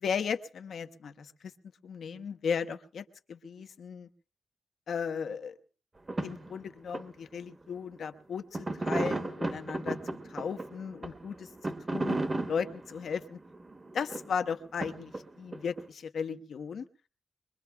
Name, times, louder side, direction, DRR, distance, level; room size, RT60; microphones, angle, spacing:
voice 1, 0.0-1.3 1.8-4.1 4.9-5.6 6.2-10.0 10.3-13.4 13.9-16.8, left 6 dB, 85° left, 8 dB, 0.8 m, -36 dB
sound 1, 6.1-6.5 6.9-7.0 7.4-7.5 8.5-14.5 14.8-15.8, right 2 dB, 30° right, 0.9 m, -34 dB
23.0 x 22.5 x 2.3 m, 0.36 s
wide cardioid pair, 120°, 0 cm